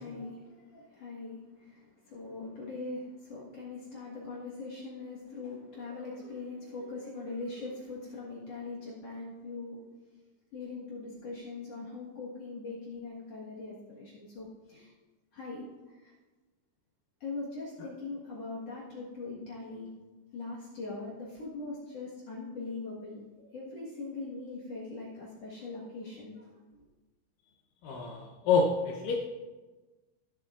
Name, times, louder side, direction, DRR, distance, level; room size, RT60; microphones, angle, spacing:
voice 1, 0.0-9.8 10.5-14.9 15.3-16.1 17.2-19.9 20.3-26.8, left 3 dB, 60° left, -5 dB, 1.7 m, -41 dB
voice 2, 27.8-29.2, left 4 dB, 85° left, 0 dB, 1.9 m, -27 dB
16.5 x 7.6 x 2.5 m, 1.2 s
omnidirectional pair, 5.1 m